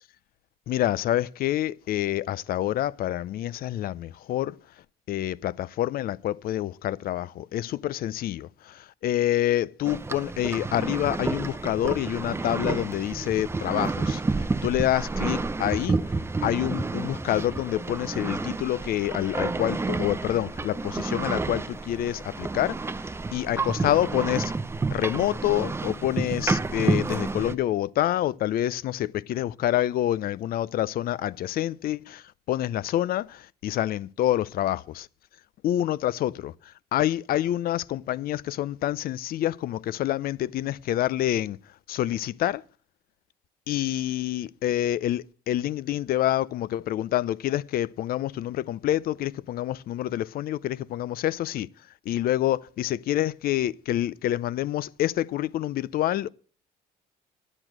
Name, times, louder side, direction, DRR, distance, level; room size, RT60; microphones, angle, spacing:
voice 1, 0.7-4.6 5.1-16.0 16.4-22.8 23.3-24.5 24.9-35.1 35.6-36.5 36.9-41.6 41.9-42.6 43.7-51.7 52.1-56.3, left 13 dB, 60° left, 0.6 m, -27 dB
sound 1, 9.8-27.6, right 3 dB, 15° right, 0.6 m, -30 dB
11.0 x 10.0 x 6.0 m
cardioid pair, 110°, 17 cm